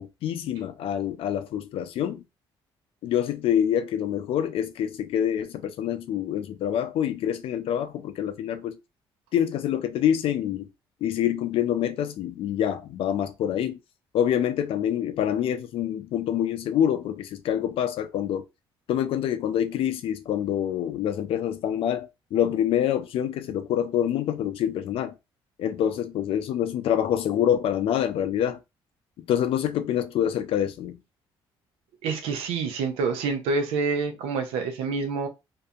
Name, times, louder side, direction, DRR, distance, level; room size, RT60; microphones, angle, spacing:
voice 1, 0.0-2.2 3.0-8.8 9.3-10.7 11.0-13.8 14.1-18.4 18.9-25.1 25.6-28.6 29.3-31.0, left 10 dB, 70° left, 0.4 m, -26 dB
voice 2, 32.0-35.3, right 4 dB, 90° right, 0.6 m, -27 dB
2.6 x 2.6 x 2.3 m
cardioid pair, 80°, 10 cm